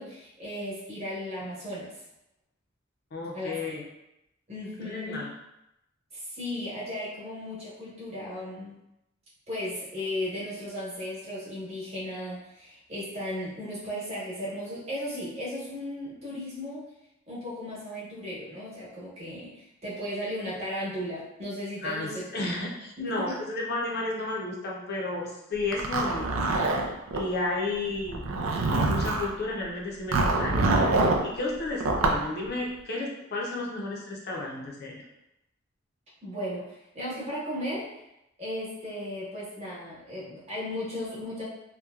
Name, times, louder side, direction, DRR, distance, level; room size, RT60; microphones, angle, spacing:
voice 1, 0.0-2.0 3.3-3.5 4.5-5.2 6.1-8.8 9.5-16.9 17.3-22.2 23.0-23.4 36.2-37.9 38.4-41.4, left 1 dB, 30° right, -9 dB, 1.1 m, -35 dB
voice 2, 3.1-3.8 4.8-5.3 21.8-28.3 28.8-35.0, left 2 dB, 50° left, -2 dB, 0.5 m, -33 dB
Zipper (clothing), 25.7-27.2 28.1-29.3 30.1-31.2 31.8-32.2, right 2 dB, 85° right, 0.4 m, -25 dB
2.9 x 2.1 x 2.3 m, 0.86 s
head